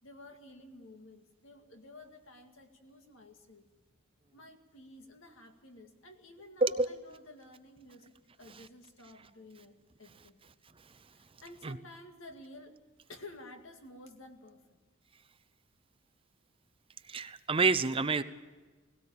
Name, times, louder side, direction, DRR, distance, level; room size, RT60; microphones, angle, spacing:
voice 1, 0.0-3.7 4.3-10.4 11.1-12.7 13.1-14.8, left 1 dB, 70° left, 5 dB, 2.2 m, -52 dB
voice 2, 17.1-18.2, right 3 dB, 25° right, 13 dB, 0.6 m, -28 dB
18.0 x 17.5 x 8.6 m, 1.3 s
head